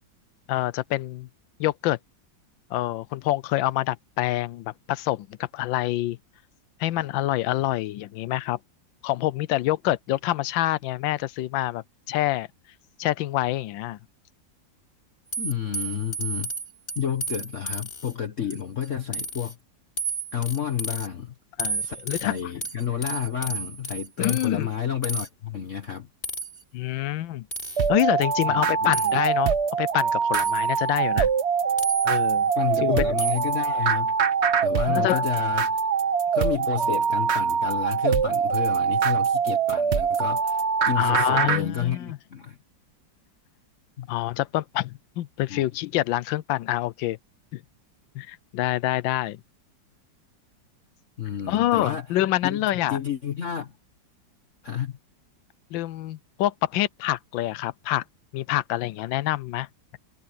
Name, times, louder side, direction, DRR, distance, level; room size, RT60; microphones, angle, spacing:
voice 1, 0.5-1.3 1.6-2.0 2.7-6.2 6.8-8.6 9.0-12.5 13.0-14.0 21.6-22.5 24.2-24.7 26.7-27.5 27.9-31.3 32.0-32.5 32.8-33.2 34.9-35.2 41.0-42.2 44.1-47.2 47.5-47.6 48.1-49.4 51.5-53.0 55.7-58.0 58.3-59.7, left 15 dB, 85° left, 1.4 m, -26 dB
sound 1, 15.3-18.1 18.5-18.9 19.1-19.5 20.0-21.1 21.6-24.5 25.0-25.3 26.2-26.6 27.5-27.9 28.9-29.2 30.3-30.8 31.8-32.4 33.2-33.6, right 2 dB, 25° left, 4.1 m, -32 dB
voice 2, 15.4-16.5 17.0-19.6 20.3-21.3 21.8-22.0 22.2-26.1 28.5-28.9 32.6-34.1 34.6-35.8 36.3-42.6 44.0-44.1 45.5-45.6 51.2-52.1 52.4-53.7 54.6-55.0, left 8 dB, 45° left, 1.4 m, -30 dB
sound 2, 27.8-41.6, right 6 dB, 45° right, 1.0 m, -23 dB
omnidirectional pair, 2.0 m